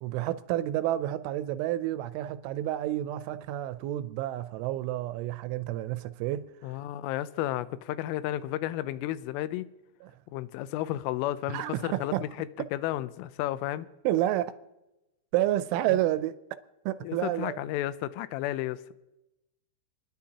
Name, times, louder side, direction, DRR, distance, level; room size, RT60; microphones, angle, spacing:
voice 1, 0.0-6.5 11.5-12.2 14.0-14.5 15.3-16.3 16.9-17.6, right 13 dB, 85° right, 2.9 m, -29 dB
voice 2, 6.6-9.7 10.3-13.9 15.9-16.0 17.0-18.9, left 14 dB, 90° left, 3.2 m, -32 dB
30.0 x 10.5 x 2.9 m
omnidirectional pair, 5.6 m